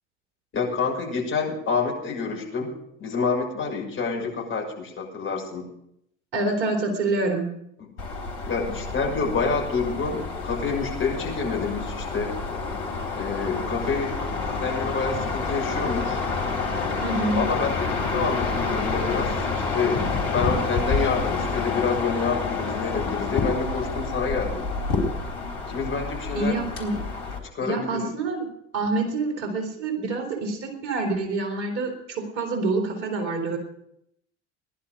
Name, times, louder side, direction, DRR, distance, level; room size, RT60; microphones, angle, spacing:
voice 1, 0.5-2.7 3.0-5.7 7.8-7.9 8.5-12.4 13.1-14.2 14.6-16.2 17.3-20.0 20.3-24.7 25.7-26.6 27.5-28.1, left 4 dB, 35° left, -1 dB, 6.4 m, -28 dB
voice 2, 6.3-7.5 17.0-17.5 26.3-27.0 27.6-28.5 28.7-33.6, right 3 dB, 55° right, 3 dB, 4.0 m, -27 dB
sound 1, 8.0-27.4, left 4 dB, 70° left, 3.7 m, -28 dB
18.5 x 11.0 x 5.3 m, 0.74 s
figure-of-eight pair, 65°, 35 cm